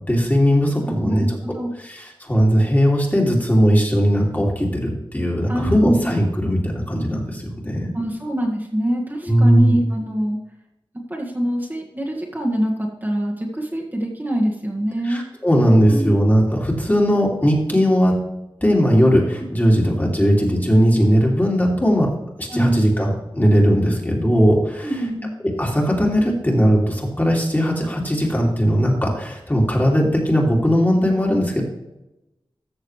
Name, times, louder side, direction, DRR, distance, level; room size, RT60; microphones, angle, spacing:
voice 1, 0.1-1.3 1.8-7.9 9.2-9.7 15.0-18.2 18.6-22.1 22.4-24.9 25.6-31.6, equal, 20° left, -1 dB, 2.5 m, -18 dB
voice 2, 0.9-1.7 5.5-6.1 7.9-10.4 11.1-15.2 15.9-16.2 22.5-22.9 24.8-25.3, right 1 dB, 20° right, -2 dB, 1.7 m, -24 dB
14.0 x 6.5 x 3.2 m, 0.91 s
wide cardioid pair, 75°, 9 cm